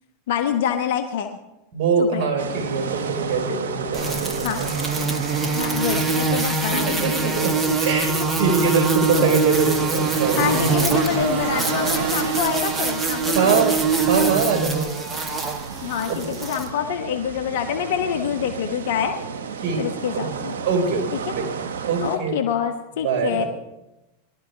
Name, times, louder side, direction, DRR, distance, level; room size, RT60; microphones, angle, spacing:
voice 1, 0.3-1.4 2.0-2.2 4.4-4.7 5.5-7.2 7.6-7.8 9.1-9.4 10.4-13.7 15.8-19.1 19.8-20.5 22.0-23.4, left 8 dB, 65° left, 6 dB, 1.3 m, -26 dB
voice 2, 1.7-4.7 5.7-6.0 6.7-7.5 7.8-10.7 13.2-13.8 14.1-15.1 16.1-16.3 19.6-19.8 20.1-20.3 20.6-21.5 21.8-22.4 23.0-23.5, right 5 dB, 50° right, 1 dB, 5.0 m, -23 dB
sound 1, 2.4-22.2, right 6 dB, 70° right, 1.5 m, -33 dB
sound 2, 3.9-16.7, right 4 dB, 15° right, 1.8 m, -24 dB
22.5 x 12.5 x 3.4 m, 0.95 s
hypercardioid pair, 100°, 0 cm